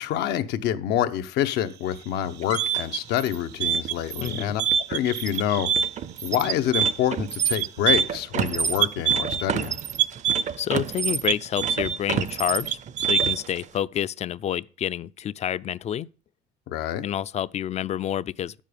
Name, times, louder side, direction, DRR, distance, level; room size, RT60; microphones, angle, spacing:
voice 1, 0.0-4.6 4.9-5.7 6.2-9.8 16.7-17.1, left 10 dB, 85° left, 0.9 m, -27 dB
sound 1, 1.5-8.2, right 10 dB, 75° right, 1.0 m, -44 dB
sound 2, 2.3-13.6, right 8 dB, 45° right, 0.6 m, -25 dB
voice 2, 4.2-4.6 10.6-16.1 17.0-18.6, left 10 dB, 40° left, 0.4 m, -28 dB
9.5 x 7.4 x 5.0 m
cardioid pair, 110°, 17 cm